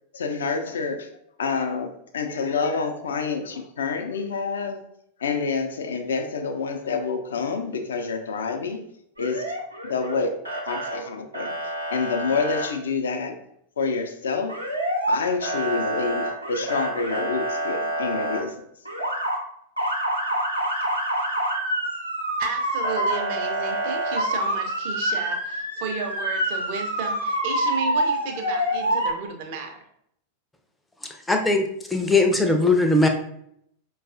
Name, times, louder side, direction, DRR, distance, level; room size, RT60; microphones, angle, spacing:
voice 1, 0.1-1.1 1.4-4.8 5.2-8.9 9.2-9.5 9.8-10.4 10.7-11.5 11.9-13.4 13.8-14.6 15.1-18.7, left 4 dB, 65° left, 6 dB, 0.5 m, -27 dB
Motor vehicle (road) / Siren, 9.2-10.1 10.4-11.0 11.3-12.7 14.5-15.2 15.4-18.4 18.8-19.4 19.8-29.1, right 1 dB, 85° right, 0.9 m, -27 dB
voice 2, 22.4-29.8, right 5 dB, 50° right, 4 dB, 0.6 m, -33 dB
voice 3, 31.3-33.1, left 2 dB, 5° left, 4 dB, 0.5 m, -20 dB
5.2 x 2.3 x 2.5 m, 0.72 s
figure-of-eight pair, 90°, 0 cm